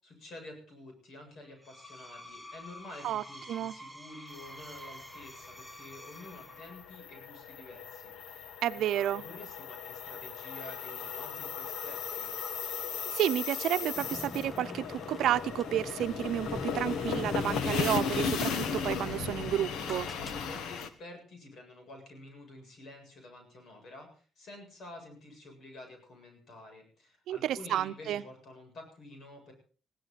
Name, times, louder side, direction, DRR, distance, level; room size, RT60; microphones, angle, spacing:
voice 1, 0.0-12.3 20.4-29.5, left 2 dB, 65° left, 4 dB, 7.8 m, -50 dB
Screech, 1.5-7.0, equal, 5° left, 1.8 m, -48 dB
sound 1, 4.4-20.9, left 6 dB, 85° left, 1.4 m, -36 dB
voice 2, 8.6-9.2 13.1-20.1 27.3-28.2, right 12 dB, 80° right, 12 dB, 0.7 m, -31 dB
sound 2, 13.9-20.6, left 2 dB, 25° left, 0.9 m, -43 dB
21.0 x 16.5 x 4.2 m, 0.40 s
cardioid pair, 90°, 0 cm